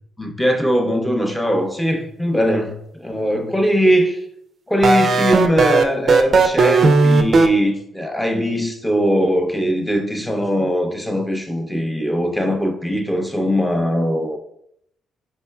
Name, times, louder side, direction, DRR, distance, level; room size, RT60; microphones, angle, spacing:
voice 1, 0.2-4.2 4.7-14.4, equal, 5° left, 3 dB, 0.6 m, -20 dB
sound 1, 4.8-7.5, right 4 dB, 50° right, 0.4 m, -14 dB
4.1 x 3.7 x 2.2 m, 0.73 s
cardioid pair, 90°, 0 cm